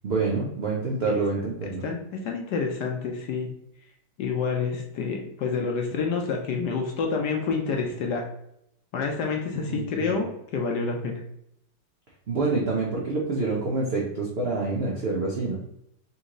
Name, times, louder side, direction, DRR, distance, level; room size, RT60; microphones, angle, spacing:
voice 1, 0.0-1.8 9.7-10.2 12.3-15.6, right 3 dB, 80° right, -3 dB, 0.5 m, -27 dB
voice 2, 1.8-3.5 4.2-8.2 8.9-10.3 10.5-11.2, left 5 dB, 65° left, 2 dB, 1.1 m, -28 dB
4.1 x 3.0 x 3.7 m, 0.75 s
omnidirectional pair, 2.3 m